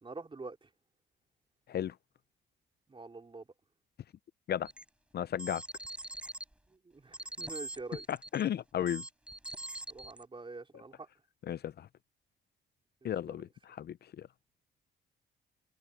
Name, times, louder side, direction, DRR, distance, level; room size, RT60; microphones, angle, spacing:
voice 1, 0.0-0.7 2.9-3.5 6.7-8.1 9.9-11.1 13.0-13.4, right 3 dB, 25° right, 3.7 m, -46 dB
sound 1, 4.7-4.8 5.3-6.4 7.1-8.5 8.8-10.2, right 1 dB, 5° right, 8.0 m, -43 dB
voice 2, 5.1-5.6 8.1-9.0 11.5-11.9 13.0-14.3, left 10 dB, 55° left, 0.6 m, -34 dB
cardioid pair, 90°, 20 cm